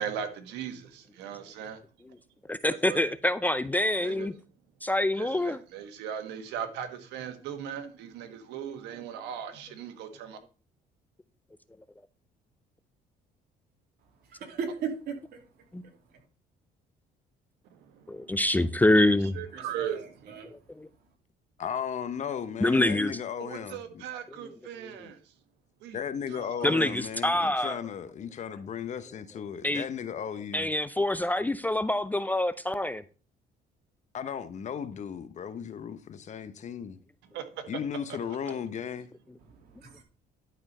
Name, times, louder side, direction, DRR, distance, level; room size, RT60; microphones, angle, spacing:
voice 1, 0.0-1.8 2.6-3.0 4.0-4.3 5.2-10.4 19.4-20.0 23.5-25.2 25.8-26.0 26.6-26.7 37.3-37.4, right 9 dB, 90° right, 1.4 m, -38 dB
voice 2, 2.5-4.3 4.8-5.6 15.7-15.8 18.1-19.4 20.5-20.9 22.6-23.1 24.3-24.5 24.8-24.9 26.6-27.8 29.6-29.8 30.5-33.0, left 1 dB, 10° left, 0.4 m, -26 dB
voice 3, 14.5-15.1 19.5-20.5 39.9-40.0, right 6 dB, 70° right, 2.8 m, -36 dB
voice 4, 21.6-24.0 25.9-30.7 34.1-37.0 37.7-39.1, left 8 dB, 45° left, 0.9 m, -36 dB
11.5 x 4.4 x 5.5 m
cardioid pair, 110°, 17 cm